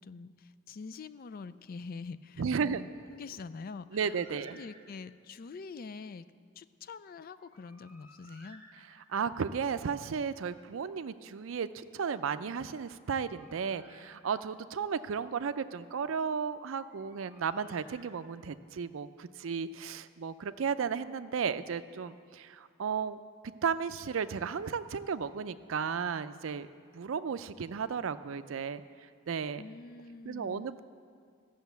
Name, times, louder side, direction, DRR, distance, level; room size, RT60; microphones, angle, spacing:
voice 1, 0.0-6.2 6.6-8.6 29.6-30.7, left 4 dB, 45° left, 15 dB, 0.4 m, -45 dB
voice 2, 2.4-2.8 3.9-4.6 9.1-23.2 23.6-26.7 26.9-28.8 29.3-29.6 30.3-30.8, right 6 dB, 75° right, 12 dB, 0.4 m, -34 dB
Bird, 4.1-5.2 7.3-9.4 12.8-14.7 16.7-18.6, right 1 dB, 10° right, 1.0 m, -59 dB
14.0 x 6.4 x 8.1 m, 2.1 s
head